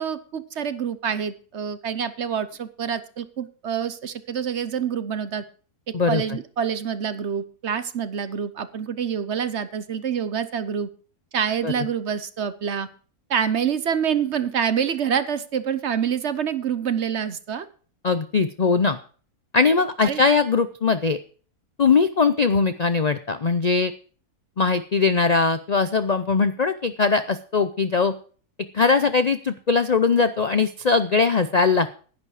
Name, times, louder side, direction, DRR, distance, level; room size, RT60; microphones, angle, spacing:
voice 1, 0.0-5.4 6.1-10.9 11.3-12.9 13.3-17.7 20.0-20.2, right 7 dB, 55° right, 13 dB, 1.0 m, -26 dB
voice 2, 18.0-19.0 19.5-21.2 21.8-23.9 24.6-28.1 28.7-32.0, left 4 dB, 65° left, 11 dB, 0.4 m, -20 dB
11.0 x 10.5 x 4.8 m, 0.41 s
omnidirectional pair, 1.6 m